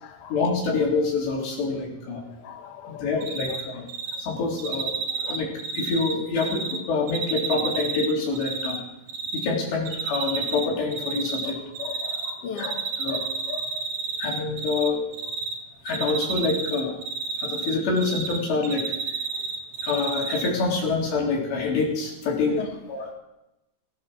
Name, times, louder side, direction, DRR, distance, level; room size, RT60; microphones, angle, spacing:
voice 1, 0.3-2.2 3.0-3.9 4.2-4.9 5.2-5.5 5.8-8.8 9.3-11.6 12.6-13.2 14.2-15.0 15.8-16.9 17.4-18.9 19.8-22.6 22.9-23.1, left 4 dB, 80° left, -2 dB, 5.7 m, -26 dB
voice 2, 2.4-3.0 5.2-5.3 11.4-11.5 11.8-13.8 22.5-22.7, left 8 dB, 55° left, 4 dB, 1.8 m, -36 dB
Cricket, 3.2-3.6 3.9-4.2 4.6-6.8 7.1-8.8 9.1-9.5 9.9-10.7 10.9-12.3 12.6-14.9 15.1-15.5 15.9-18.4 18.6-20.5, right 5 dB, 55° right, 2.2 m, -30 dB
17.5 x 10.5 x 6.3 m, 0.91 s
omnidirectional pair, 4.9 m